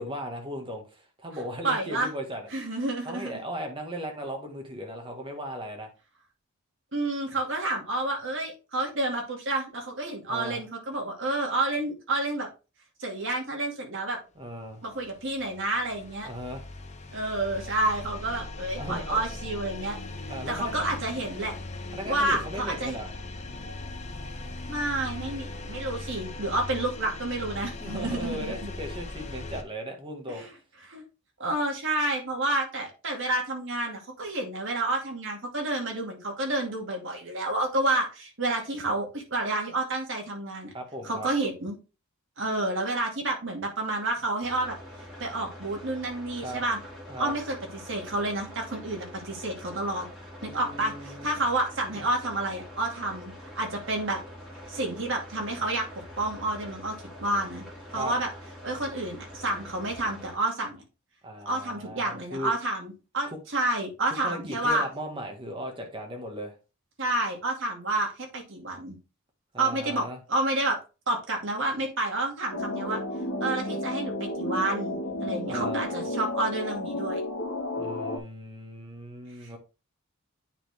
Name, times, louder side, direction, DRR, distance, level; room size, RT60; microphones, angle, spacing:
voice 1, 0.0-2.4 3.0-5.9 10.3-10.6 14.3-14.8 16.2-16.6 18.8-19.2 20.3-20.8 21.9-23.1 27.8-30.4 40.7-41.3 46.4-46.6 47.1-47.3 50.5-51.3 51.9-52.0 57.9-58.1 61.2-62.5 64.2-66.5 69.5-70.2 75.5-75.8 77.8-79.6, equal, 25° right, 1.6 m, -37 dB
voice 2, 1.6-2.1 2.5-3.4 6.9-12.5 13.0-14.2 14.8-16.3 17.1-20.0 20.5-21.6 22.0-23.0 24.7-28.7 30.3-30.5 30.9-31.0 31.4-40.7 41.0-41.8 42.4-44.8 45.2-46.8 47.2-47.6 47.8-50.1 50.4-54.2 54.7-56.9 57.2-57.6 57.9-58.3 58.6-60.8 61.5-64.8 67.0-69.0 69.6-70.8 71.1-73.0 73.4-77.2 79.4-79.6, right 2 dB, 55° right, 2.3 m, -29 dB
sound 1, 14.7-29.6, left 2 dB, 30° left, 0.8 m, -39 dB
sound 2, 44.4-60.4, equal, 5° right, 2.3 m, -45 dB
sound 3, 72.5-78.2, left 1 dB, 75° left, 1.7 m, -32 dB
9.0 x 4.2 x 3.5 m
head